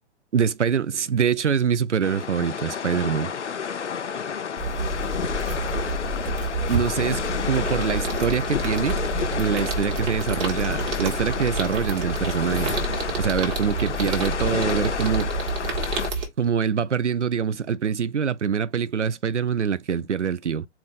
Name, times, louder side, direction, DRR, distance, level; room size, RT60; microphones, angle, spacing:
voice 1, 0.3-3.3 6.7-9.0 9.3-12.7 13.2-15.3 16.4-20.7, right 7 dB, 80° right, 0.5 m, -24 dB
sound 1, 2.0-16.1, left 7 dB, 75° left, 0.6 m, -30 dB
sound 2, 4.6-16.3, right 2 dB, 20° right, 1.3 m, -29 dB
4.2 x 2.5 x 4.0 m
figure-of-eight pair, 125°, 35 cm